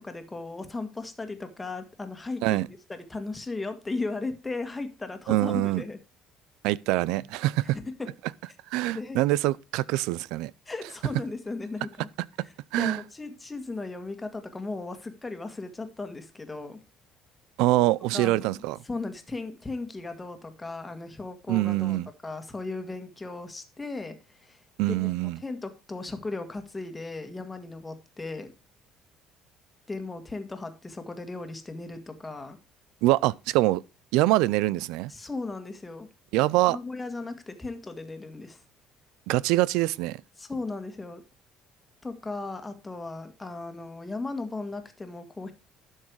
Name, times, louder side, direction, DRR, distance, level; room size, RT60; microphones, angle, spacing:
voice 1, 0.0-6.0 7.6-8.1 8.9-9.2 10.7-11.9 12.4-16.8 18.1-22.0 22.2-24.6 24.9-25.1 25.4-28.5 29.9-32.6 35.1-36.1 36.7-38.6 40.4-41.2 42.0-45.5, left 3 dB, 15° left, 1.8 m, -36 dB
voice 2, 5.3-5.8 6.6-7.8 8.7-10.5 12.4-12.5 12.7-13.0 17.6-18.8 21.5-22.1 24.8-25.4 33.0-33.8 34.1-35.1 36.3-36.8 39.3-40.2, right 17 dB, 85° right, 0.5 m, -24 dB
12.0 x 6.5 x 4.7 m
cardioid pair, 130°, 0 cm